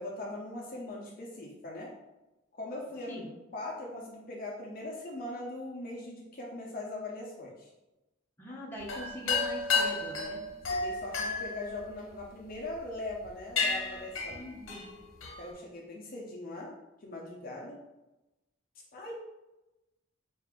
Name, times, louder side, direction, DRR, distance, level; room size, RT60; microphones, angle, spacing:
voice 1, 0.0-1.9 2.5-3.2 3.5-7.7 10.7-14.4 15.4-16.7 17.0-17.8 18.9-19.2, left 2 dB, 45° left, -2 dB, 0.6 m, -40 dB
voice 2, 8.4-10.4 14.3-14.9, equal, 10° left, -4 dB, 0.8 m, -42 dB
sound 1, 8.8-12.6 13.1-13.3 13.6-15.5, left 4 dB, 80° left, 0.9 m, -32 dB
4.1 x 2.4 x 3.5 m, 1.0 s
head